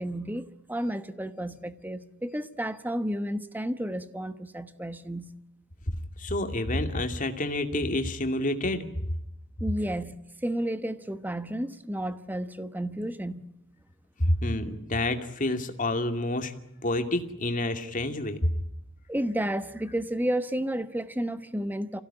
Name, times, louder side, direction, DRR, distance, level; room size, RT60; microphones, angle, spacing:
voice 1, 0.0-5.3 9.6-13.4 19.1-22.0, right 1 dB, 10° right, 1.1 m, -32 dB
voice 2, 6.2-8.8 14.2-16.5 16.8-18.4, left 1 dB, 40° left, 2.5 m, -28 dB
27.5 x 16.5 x 9.9 m
head